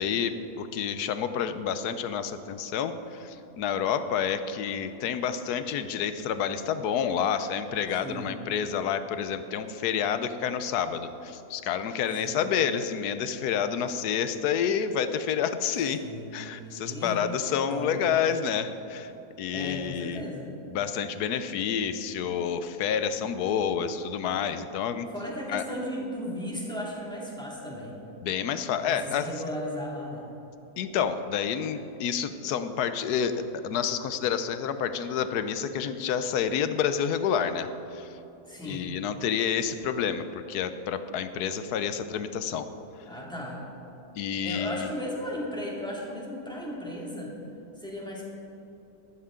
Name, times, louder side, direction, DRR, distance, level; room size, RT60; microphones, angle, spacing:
voice 1, 0.0-16.0 16.3-19.1 19.4-20.2 20.7-25.1 25.5-25.6 28.2-29.3 30.8-33.4 33.6-38.1 38.6-42.7 44.2-44.9, left 8 dB, 85° left, 11 dB, 1.2 m, -29 dB
voice 2, 16.0-17.2 17.7-18.2 19.5-20.5 25.1-28.0 28.8-30.3 38.4-38.9 43.0-43.6 44.4-47.3 47.8-48.2, equal, 5° left, -4 dB, 2.2 m, -36 dB
14.0 x 12.5 x 3.7 m, 2.9 s
omnidirectional pair, 1.6 m